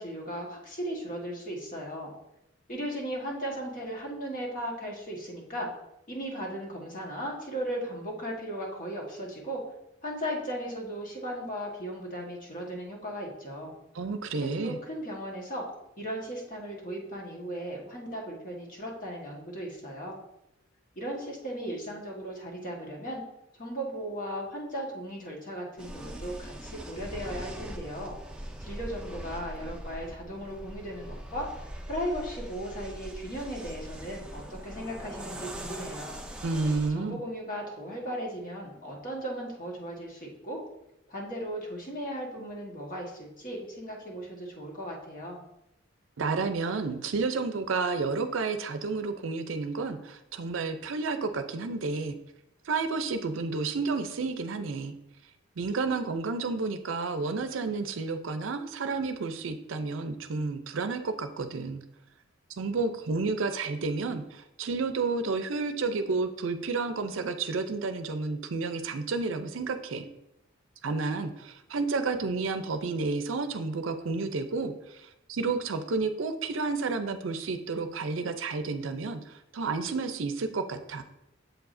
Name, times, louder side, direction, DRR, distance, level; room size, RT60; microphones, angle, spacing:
voice 1, 0.0-2.1 2.7-5.7 6.1-9.6 10.0-13.7 14.4-15.6 16.0-20.2 20.9-23.2 23.6-28.2 28.6-31.5 31.9-36.2 36.9-40.6 41.1-45.4, equal, 45° left, -1 dB, 1.4 m, -36 dB
voice 2, 13.9-14.8 36.4-37.2 46.2-52.2 52.6-54.9 55.6-61.8 62.6-70.1 70.8-81.0, right 4 dB, 70° right, 8 dB, 0.5 m, -31 dB
sound 1, 25.8-36.9, right 1 dB, 5° right, 0.5 m, -41 dB
7.7 x 4.7 x 2.6 m, 0.87 s
head